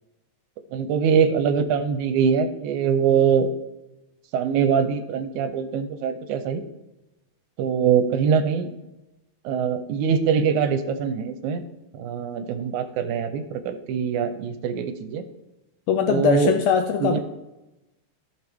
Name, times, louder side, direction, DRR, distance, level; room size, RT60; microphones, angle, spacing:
voice 1, 0.7-3.5 4.3-6.6 7.6-8.7 9.5-11.7 11.9-15.3 16.1-16.5 17.0-17.2, right 7 dB, 80° right, 10 dB, 2.0 m, -23 dB
voice 2, 15.9-17.2, left 7 dB, 80° left, 6 dB, 1.6 m, -21 dB
14.0 x 5.9 x 3.5 m, 0.98 s
omnidirectional pair, 3.6 m